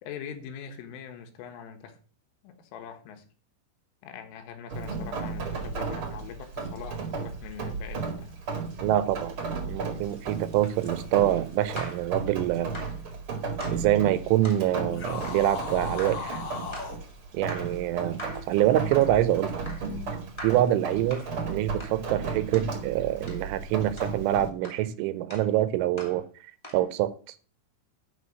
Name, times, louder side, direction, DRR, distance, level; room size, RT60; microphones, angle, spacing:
voice 1, 0.0-2.0 2.4-3.3 4.0-8.3, left 8 dB, 90° left, 4.0 m, -42 dB
Rain, 4.7-24.5, right 4 dB, 45° right, 1.7 m, -35 dB
voice 2, 8.8-9.3 9.7-12.8 13.7-16.4 17.3-19.6 20.4-26.3 26.7-27.1, right 13 dB, 80° right, 3.2 m, -25 dB
sound 1, 10.0-12.1 12.7-13.0 13.6-13.9 14.4-14.7 15.2-15.5 16.0-16.3 16.7-17.0 17.5-17.8 18.2-18.5 18.9-19.2 19.6-19.9 20.4-20.7 21.1-21.3 21.8-22.0 22.5-22.7 23.3-23.4 24.0-24.2 24.6-24.9 25.3-25.5 26.0-26.2 26.6-26.8, equal, 20° left, 0.8 m, -42 dB
sound 2, 14.9-17.0, left 5 dB, 45° left, 2.3 m, -36 dB
11.5 x 5.0 x 6.2 m
omnidirectional pair, 5.5 m